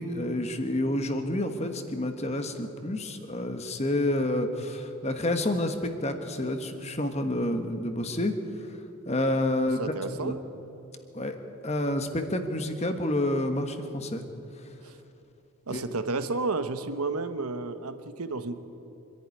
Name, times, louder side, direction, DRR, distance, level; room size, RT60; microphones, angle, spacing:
voice 1, 0.0-8.3 9.1-9.8 10.2-10.3 11.1-11.4 11.6-14.2 15.7-15.8, left 1 dB, 30° left, 7 dB, 1.3 m, -29 dB
voice 2, 9.8-10.4 14.8-15.0 15.7-18.5, right 3 dB, 85° right, 10 dB, 1.2 m, -31 dB
25.0 x 11.0 x 9.9 m, 2.8 s
head